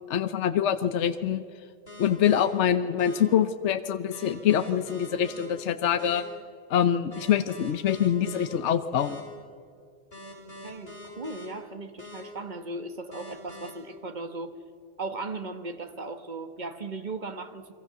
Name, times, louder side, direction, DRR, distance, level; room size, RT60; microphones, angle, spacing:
voice 1, 0.1-1.4 2.0-6.2 6.7-9.2, left 9 dB, 70° left, 11 dB, 1.1 m, -25 dB
sound 1, 1.9-2.4 3.0-3.2 4.1-5.5 6.0-6.2 7.1-8.5 9.0-9.2 10.1-11.5 12.0-12.2 13.1-13.7, left 1 dB, 55° left, 6.2 m, -43 dB
voice 2, 10.6-14.6 15.0-17.7, right 3 dB, 40° right, 8 dB, 1.4 m, -37 dB
28.5 x 22.5 x 6.8 m, 2.2 s
omnidirectional pair, 1.2 m